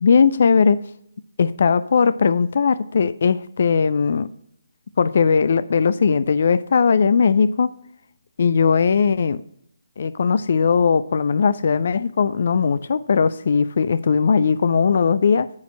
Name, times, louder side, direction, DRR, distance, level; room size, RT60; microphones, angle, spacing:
voice 1, 0.0-0.8 1.4-4.3 5.0-7.7 8.4-9.4 10.0-15.5, left 6 dB, 50° left, 17 dB, 0.3 m, -18 dB
9.7 x 4.2 x 6.1 m, 0.72 s
figure-of-eight pair, 145°, 0 cm